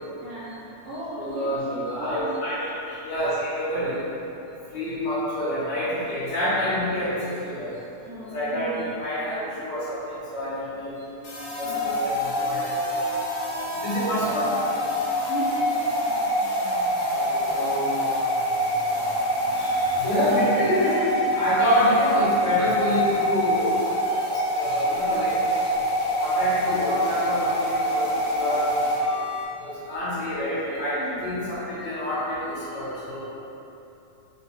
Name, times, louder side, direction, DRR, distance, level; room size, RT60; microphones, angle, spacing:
voice 1, 0.2-2.3 8.0-8.7 11.6-11.9 15.3-15.7 31.0-31.3, right 1 dB, 80° right, -11 dB, 1.6 m, -36 dB
voice 2, 1.2-3.9 4.7-7.7 8.3-10.9 11.5-12.8 13.8-14.5 17.1-17.9 19.4-21.0 21.3-23.8 24.1-24.3 24.5-25.3 26.2-28.6 29.6-33.2, equal, 65° left, -13 dB, 2.4 m, -27 dB
sound 1, 11.2-29.4, equal, 85° left, 1.2 m, -25 dB
5.4 x 2.6 x 2.8 m, 2.9 s
omnidirectional pair, 3.7 m